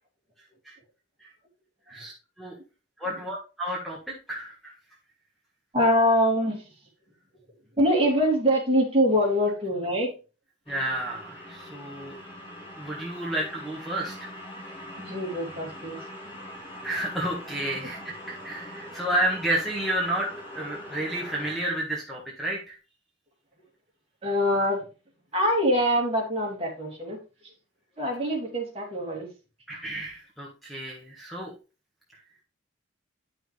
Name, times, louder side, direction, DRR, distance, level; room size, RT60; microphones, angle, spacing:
voice 1, 3.0-4.0 4.3-4.7 10.7-12.1 12.8-14.3 16.8-22.8 29.7-31.5, right 1 dB, ahead, -3 dB, 1.5 m, -31 dB
voice 2, 5.7-6.6 7.8-10.1 15.0-16.0 24.2-24.8 25.3-27.2 28.0-29.3, equal, 30° right, -1 dB, 2.9 m, -24 dB
sound 1, 10.7-21.6, left 1 dB, 25° left, 2.7 m, -42 dB
10.0 x 6.1 x 3.3 m, 0.31 s
head